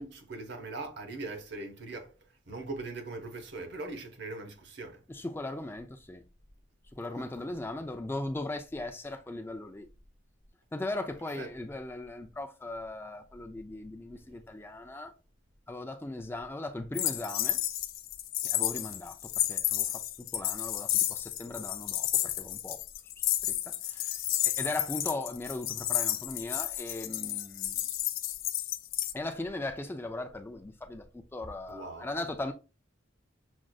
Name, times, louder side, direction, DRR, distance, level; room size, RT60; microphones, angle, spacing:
voice 1, 0.0-2.2 2.5-5.0 7.2-7.3 11.4-11.5 31.7-32.1, right 3 dB, 60° right, 0.9 m, -40 dB
voice 2, 5.1-6.2 6.9-9.9 10.7-15.1 15.7-17.6 18.4-22.8 23.4-24.2 24.4-27.9 29.1-32.5, left 2 dB, 10° left, 0.3 m, -38 dB
sound 1, 16.9-29.1, left 13 dB, 80° left, 0.5 m, -31 dB
6.1 x 2.5 x 2.3 m
head